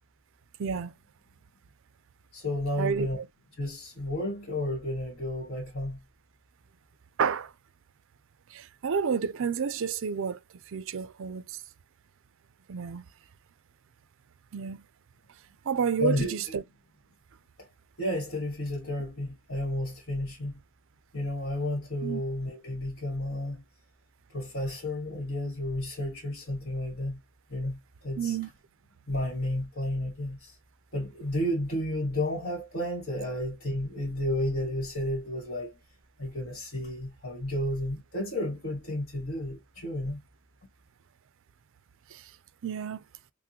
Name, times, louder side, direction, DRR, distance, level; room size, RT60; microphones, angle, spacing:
voice 1, 0.6-0.9 2.7-3.3 7.2-7.5 8.5-10.4 10.7-11.6 12.7-13.1 14.5-14.8 15.7-16.6 22.0-22.2 28.2-28.5 42.1-42.2 42.6-43.0, right 6 dB, 65° right, 0.5 m, -30 dB
voice 2, 2.3-3.2 3.6-6.0 16.0-16.6 18.0-20.6 21.1-23.6 24.3-27.2 27.5-28.4 29.1-30.6 30.9-35.8 36.2-40.2, left 1 dB, 50° left, 1.6 m, -32 dB
5.8 x 2.1 x 2.8 m
head